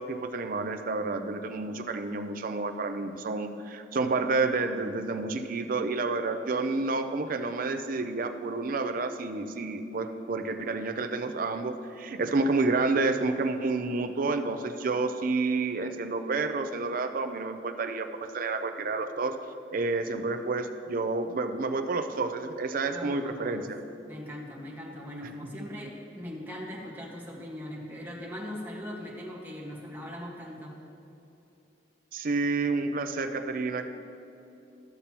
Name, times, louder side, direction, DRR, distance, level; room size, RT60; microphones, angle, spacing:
voice 1, 0.0-19.4 19.7-23.8 32.1-33.9, right 3 dB, 50° right, 8 dB, 0.5 m, -29 dB
voice 2, 22.9-23.7 24.1-30.7, equal, 10° right, -4 dB, 1.4 m, -40 dB
13.0 x 6.8 x 2.9 m, 2.8 s
head